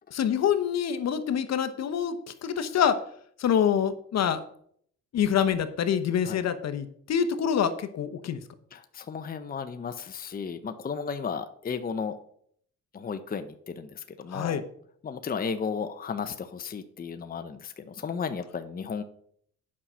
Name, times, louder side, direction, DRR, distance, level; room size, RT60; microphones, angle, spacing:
voice 1, 0.1-3.0 3.4-4.4 5.1-8.4 14.3-14.6, left 8 dB, 60° left, 10 dB, 1.0 m, -26 dB
voice 2, 8.7-12.2 12.9-14.6 15.0-19.0, left 6 dB, 30° left, 9 dB, 0.7 m, -34 dB
8.6 x 5.7 x 6.1 m, 0.64 s
cardioid pair, 90°, 30 cm